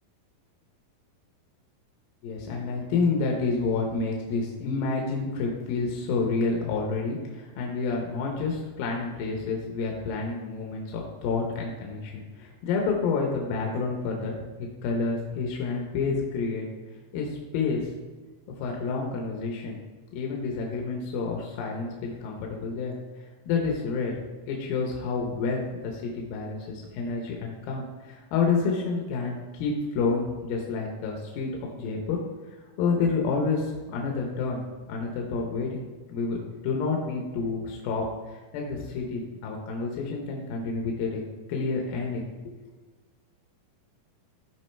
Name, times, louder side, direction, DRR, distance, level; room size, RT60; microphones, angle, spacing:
voice 1, 2.2-14.3 14.8-16.7 17.1-17.9 18.6-19.8 20.1-23.0 23.5-24.2 24.5-32.2 32.8-38.1 38.5-41.2 41.5-42.6, left 4 dB, 80° left, 0 dB, 2.7 m, -29 dB
13.5 x 4.9 x 3.3 m, 1.3 s
omnidirectional pair, 4.3 m